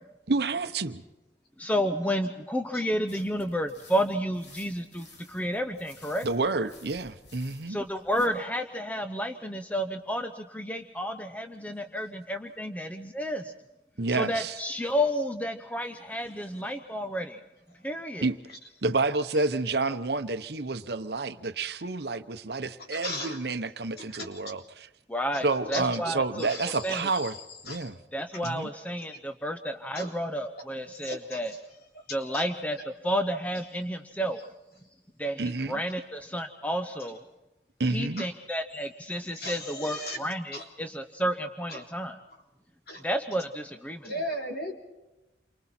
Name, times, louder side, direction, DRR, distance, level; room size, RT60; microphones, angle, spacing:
voice 1, 0.3-1.0 6.2-7.8 14.0-14.6 18.2-18.4 18.8-24.6 25.4-27.4 27.6-27.9 28.4-28.7 35.4-35.8 37.8-38.2, right 3 dB, 60° right, 10 dB, 0.9 m, -29 dB
voice 2, 1.6-6.3 7.7-13.5 14.1-17.4 17.8-18.3 25.1-26.5 26.8-27.1 28.1-31.5 32.1-34.4 35.2-37.2 37.9-42.2 43.0-44.1, equal, 10° left, 7 dB, 0.7 m, -31 dB
sound 1, 3.1-8.3, left 2 dB, 75° left, 4.5 m, -54 dB
voice 3, 22.8-23.4 24.0-24.5 25.3-25.4 25.7-25.8 26.4-27.9 28.3-28.5 29.0-29.2 29.9-30.1 30.9-31.6 32.2-32.5 37.0-37.1 38.2-38.3 39.3-40.2 40.5-40.7 41.7-41.8 42.9-43.0 44.0-44.7, left 1 dB, 55° left, 1 dB, 3.5 m, -38 dB
28.5 x 24.5 x 4.4 m, 1.0 s
head